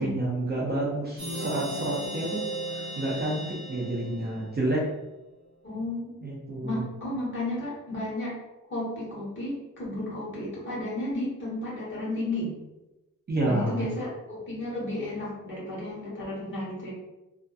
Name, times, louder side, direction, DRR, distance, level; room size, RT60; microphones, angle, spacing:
voice 1, 0.0-2.4 2.7-4.8 6.2-6.8 13.3-13.9, right 1 dB, 30° right, -5 dB, 0.5 m, -29 dB
sound 1, 1.2-4.7, right 1 dB, ahead, 1.0 m, -36 dB
voice 2, 5.6-6.3 6.6-8.4 8.7-12.5 13.4-16.9, left 1 dB, 35° left, -8 dB, 1.0 m, -33 dB
2.5 x 2.4 x 2.3 m, 1.0 s
wide cardioid pair, 170°, 32 cm